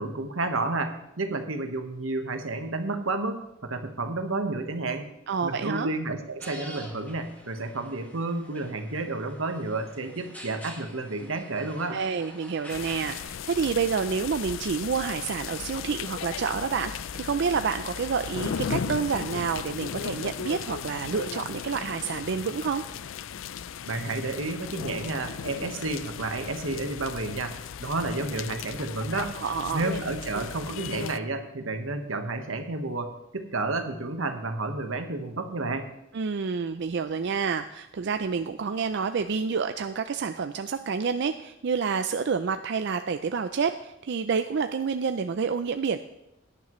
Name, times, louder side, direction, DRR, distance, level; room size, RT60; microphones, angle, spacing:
voice 1, 0.0-5.1 5.4-12.0 23.9-29.3 29.7-35.9, right 2 dB, 90° right, 6 dB, 1.3 m, -31 dB
voice 2, 5.3-5.9 11.9-22.8 29.3-29.8 30.3-30.4 36.1-46.0, right 5 dB, 60° right, 8 dB, 0.4 m, -28 dB
sound 1, 6.4-13.2, equal, 10° left, 1.8 m, -46 dB
sound 2, 12.7-31.2, left 7 dB, 75° left, 0.4 m, -36 dB
17.0 x 10.0 x 3.1 m, 0.85 s
head